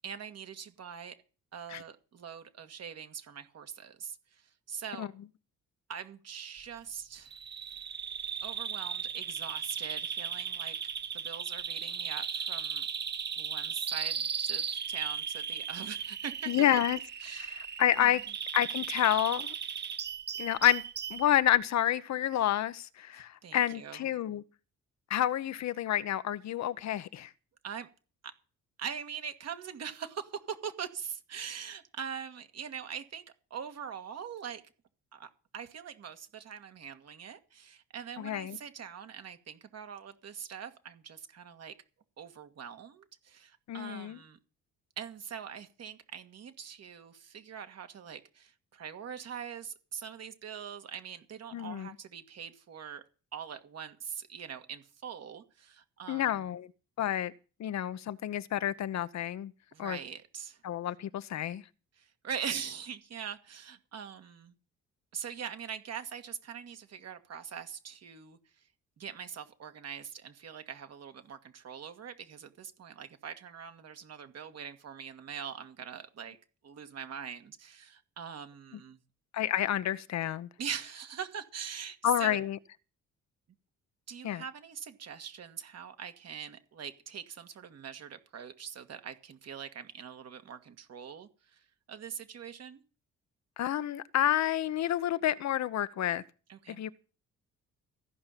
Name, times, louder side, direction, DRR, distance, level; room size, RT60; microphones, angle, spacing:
voice 1, 0.0-1.2 1.5-5.1 5.9-7.3 8.4-10.8 11.1-12.8 13.4-16.8 17.2-17.7 18.0-18.1 23.1-24.1 27.6-27.9 28.2-28.3 28.8-33.2 33.5-34.6 35.1-41.7 42.2-44.4 45.0-53.0 53.3-56.5 59.7-60.6 62.0-64.6 65.1-68.7 69.0-76.4 76.6-79.0 80.6-82.4 84.1-92.8 96.5-96.8, right 7 dB, 55° right, 1.8 m, -42 dB
Bird vocalization bird call bird song, 7.3-21.3, right 7 dB, 35° right, 0.8 m, -36 dB
voice 2, 16.5-17.0 17.4-18.2 18.5-19.5 20.4-20.8 21.1-24.4 25.1-27.3 38.2-38.6 43.7-44.2 51.5-51.9 56.1-56.7 57.0-57.3 57.6-59.5 59.8-60.0 60.6-61.6 79.3-80.5 82.0-82.6 84.2-84.4 93.6-96.2 96.7-96.9, left 11 dB, 65° left, 0.9 m, -29 dB
14.5 x 5.5 x 9.0 m
cardioid pair, 90°, 30 cm